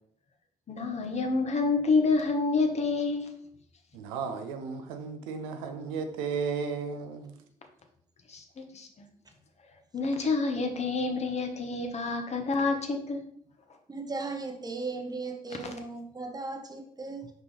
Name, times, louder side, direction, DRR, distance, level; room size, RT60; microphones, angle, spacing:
voice 1, 0.7-3.3 8.3-8.9 9.9-13.2, left 3 dB, 40° left, 1.2 m, -28 dB
voice 2, 3.9-7.3, right 5 dB, 75° right, 0.7 m, -34 dB
voice 3, 13.9-17.3, right 3 dB, 20° right, 1.1 m, -37 dB
5.8 x 5.2 x 3.3 m
figure-of-eight pair, 45°, 17 cm